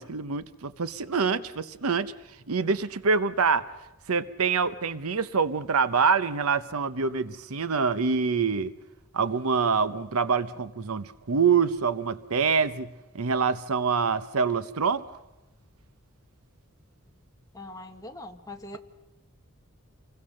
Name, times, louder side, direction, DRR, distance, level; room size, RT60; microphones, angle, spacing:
voice 1, 0.0-2.1 2.5-3.7 4.1-8.7 9.1-15.0, right 5 dB, 75° right, 14 dB, 0.8 m, -25 dB
voice 2, 17.5-18.8, left 1 dB, 15° left, 4 dB, 1.5 m, -42 dB
28.0 x 22.0 x 6.5 m, 1.0 s
head